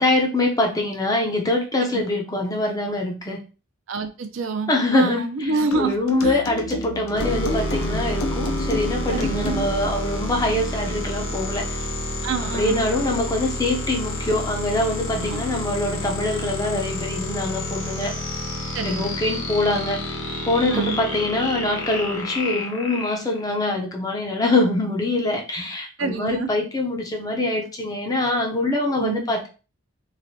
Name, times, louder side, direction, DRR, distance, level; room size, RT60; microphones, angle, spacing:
voice 1, 0.0-3.4 4.7-11.8 12.5-18.2 18.8-20.2 20.5-29.5, left 2 dB, 15° left, 1 dB, 0.5 m, -24 dB
voice 2, 3.9-5.9 6.2-6.4 9.1-9.6 12.2-12.8 15.2-15.4 18.7-19.1 20.7-21.0 26.0-26.5 29.0-29.3, right 4 dB, 60° right, 7 dB, 0.4 m, -27 dB
sound 1, 5.7-10.0, left 2 dB, 75° left, 0.5 m, -31 dB
sound 2, 7.1-23.6, left 1 dB, 55° left, 0.9 m, -29 dB
3.2 x 2.5 x 2.6 m, 0.33 s
head